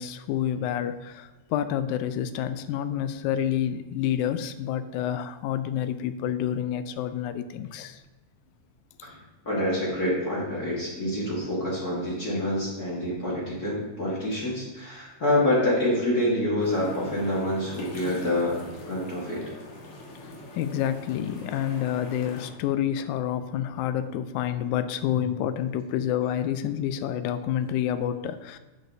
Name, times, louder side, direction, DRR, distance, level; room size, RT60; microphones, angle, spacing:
voice 1, 0.0-8.0 20.2-28.6, left 10 dB, 90° left, 12 dB, 2.0 m, -28 dB
voice 2, 9.5-18.6 18.9-19.4, left 1 dB, 35° left, -6 dB, 1.8 m, -27 dB
sound 1, 16.6-22.5, left 1 dB, 75° left, 2.7 m, -43 dB
10.0 x 8.2 x 2.7 m, 1.1 s
omnidirectional pair, 3.3 m